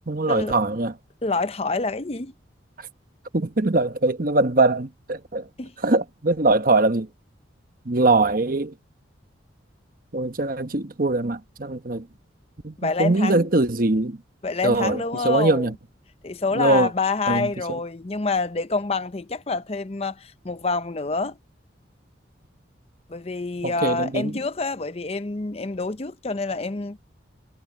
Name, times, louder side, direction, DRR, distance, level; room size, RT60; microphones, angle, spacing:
voice 1, 0.1-0.9 3.3-5.4 5.8-7.1 7.9-8.7 10.1-12.0 12.6-14.2 14.6-15.7 16.5-16.9 17.3-17.5 23.6-24.4, right 2 dB, 45° right, 1.2 m, -22 dB
voice 2, 1.2-2.3 5.6-5.7 12.8-13.5 14.4-15.7 16.2-21.4 23.1-27.0, left 3 dB, 30° left, 0.7 m, -27 dB
head